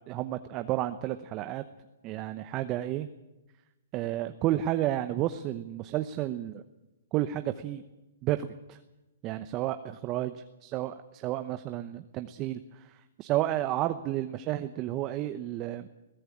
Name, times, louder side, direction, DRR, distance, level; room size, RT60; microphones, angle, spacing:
voice 1, 0.1-1.6 2.0-3.1 3.9-6.6 7.1-7.8 8.2-8.8 9.2-15.9, right 13 dB, 30° right, 10 dB, 0.9 m, -31 dB
22.5 x 16.5 x 8.7 m, 1.0 s
hypercardioid pair, 145°, 0 cm